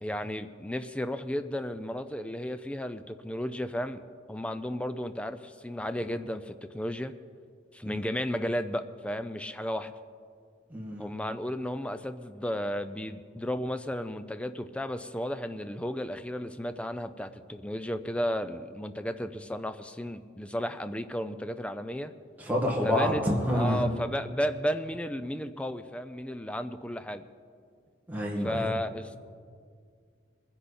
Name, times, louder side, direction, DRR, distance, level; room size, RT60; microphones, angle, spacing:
voice 1, 0.0-7.1 7.7-9.9 11.0-22.1 22.8-23.2 23.5-27.3 28.4-29.2, equal, 5° left, 10 dB, 0.4 m, -33 dB
voice 2, 10.7-11.1 22.4-23.9 28.1-28.7, equal, 10° right, -2 dB, 2.0 m, -28 dB
22.0 x 10.5 x 4.3 m, 2.1 s
head